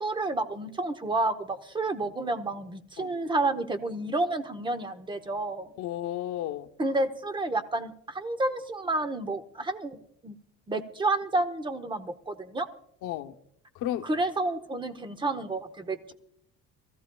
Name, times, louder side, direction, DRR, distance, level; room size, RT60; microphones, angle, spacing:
voice 1, 0.0-5.7 6.8-10.0 10.2-10.3 10.7-12.7 14.0-16.1, right 2 dB, 15° right, 0.8 m, -30 dB
voice 2, 5.8-6.7 13.0-13.3 13.8-14.1, left 12 dB, 85° left, 0.8 m, -32 dB
22.5 x 15.0 x 2.3 m
cardioid pair, 135°, 30 cm